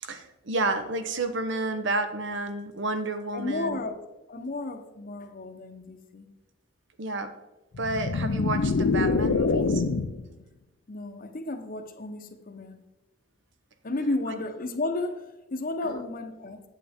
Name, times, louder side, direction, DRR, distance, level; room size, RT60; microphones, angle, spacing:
voice 1, 0.0-3.8 7.0-7.4 7.8-9.8 15.8-15.9, right 2 dB, 65° right, 0.9 m, -30 dB
voice 2, 3.3-4.0 4.3-6.3 10.9-12.8 13.8-16.6, left 2 dB, 50° left, 0.9 m, -33 dB
sound 1, 7.7-10.3, left 4 dB, 70° left, 0.5 m, -25 dB
8.6 x 8.1 x 3.5 m
head